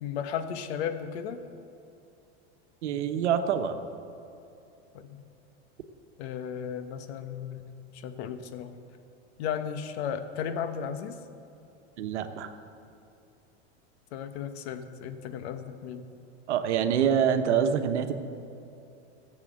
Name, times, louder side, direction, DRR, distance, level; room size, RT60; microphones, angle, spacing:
voice 1, 0.0-1.4 4.9-5.2 6.2-7.6 7.9-8.7 9.4-11.2 14.1-16.1, left 8 dB, 70° left, 9 dB, 1.2 m, -35 dB
voice 2, 2.8-3.8 12.0-12.5 16.5-18.1, right 8 dB, 85° right, 8 dB, 1.2 m, -26 dB
14.5 x 7.5 x 7.5 m, 2.8 s
supercardioid pair, 120°, 34 cm